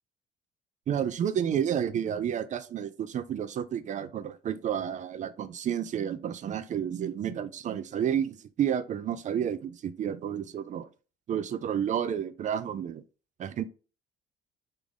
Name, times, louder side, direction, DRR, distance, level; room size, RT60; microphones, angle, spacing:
voice 1, 0.9-10.9 11.3-13.0 13.4-13.6, right 9 dB, 40° right, 0.4 m, -31 dB
3.3 x 2.4 x 3.6 m
supercardioid pair, 85°, 18 cm